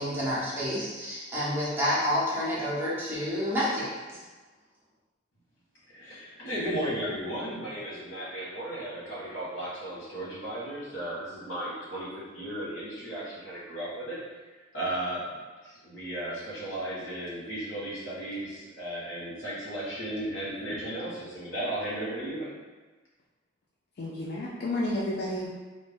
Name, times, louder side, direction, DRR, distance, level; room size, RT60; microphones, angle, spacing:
voice 1, 0.0-4.2, equal, 10° right, -10 dB, 0.9 m, -29 dB
voice 2, 5.9-14.2 14.7-15.3 15.6-22.5, right 1 dB, 90° left, -7 dB, 1.1 m, -35 dB
voice 3, 24.0-25.5, left 1 dB, 55° left, -4 dB, 0.4 m, -31 dB
2.5 x 2.1 x 3.4 m, 1.3 s
head